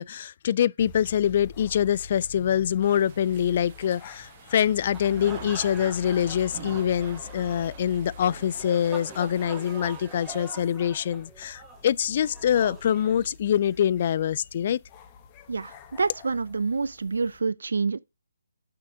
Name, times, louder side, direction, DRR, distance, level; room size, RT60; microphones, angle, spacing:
voice 1, 0.0-14.8, left 9 dB, 40° left, 0.3 m, -25 dB
sound 1, 0.8-17.4, left 6 dB, 25° left, 1.3 m, -47 dB
sound 2, 2.8-10.5, right 8 dB, 35° right, 1.1 m, -47 dB
sound 3, 4.8-13.8, right 3 dB, 10° right, 1.8 m, -44 dB
voice 2, 15.5-18.0, right 4 dB, 70° right, 0.4 m, -27 dB
6.6 x 5.8 x 4.8 m
figure-of-eight pair, 145°, 0 cm